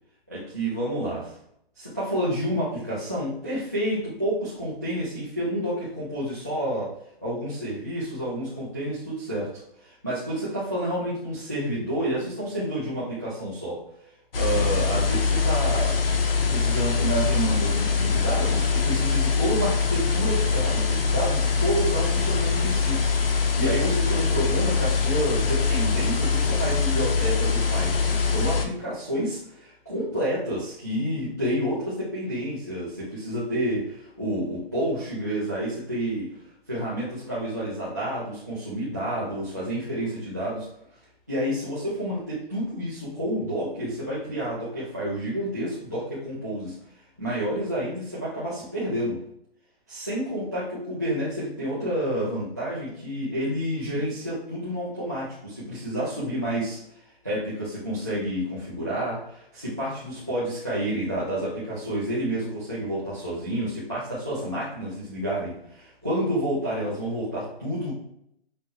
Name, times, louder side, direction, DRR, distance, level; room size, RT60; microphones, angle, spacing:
voice 1, 0.3-1.3 1.8-6.9 7.2-13.8 14.3-16.0 16.5-36.3 36.7-40.7 41.3-46.8 47.2-49.2 49.9-56.8 57.2-67.9, right 1 dB, 15° right, -11 dB, 0.4 m, -29 dB
sound 1, 14.3-28.7, left 5 dB, 65° left, 0.7 m, -23 dB
5.2 x 2.1 x 3.2 m, 0.73 s
hypercardioid pair, 175°, 31 cm